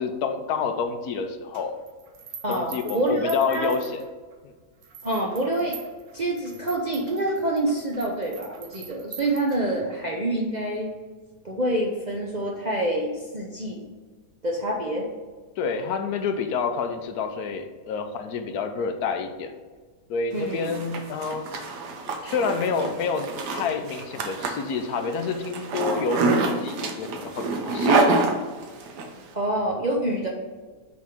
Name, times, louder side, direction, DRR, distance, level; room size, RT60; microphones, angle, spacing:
voice 1, 0.0-1.8 2.5-4.0 4.4-4.5 15.6-19.5 20.1-21.4 22.2-28.1, left 5 dB, 70° left, 7 dB, 1.1 m, -28 dB
sound 1, 1.5-4.3 4.8-10.0, right 7 dB, 65° right, 1.3 m, -44 dB
voice 2, 2.4-3.8 5.0-5.8 6.1-11.0 11.4-13.8 14.4-15.1 20.3-20.7 29.3-30.3, right 1 dB, 40° right, -2 dB, 0.6 m, -27 dB
Zipper (clothing), 20.4-29.1, right 3 dB, 85° right, 1.4 m, -26 dB
6.2 x 3.6 x 5.9 m, 1.4 s
omnidirectional pair, 1.7 m